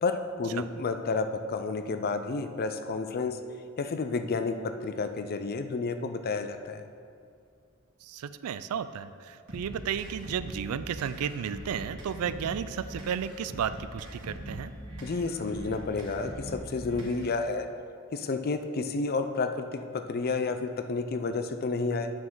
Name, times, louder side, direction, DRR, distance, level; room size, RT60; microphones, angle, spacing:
voice 1, 0.0-3.4 3.8-6.8 15.0-17.7 18.1-22.1, left 4 dB, 45° left, 8 dB, 0.4 m, -31 dB
voice 2, 8.0-14.7, right 8 dB, 85° right, 14 dB, 0.3 m, -33 dB
sound 1, 9.5-17.5, equal, 55° right, 1.8 m, -42 dB
8.9 x 6.0 x 3.8 m, 2.3 s
head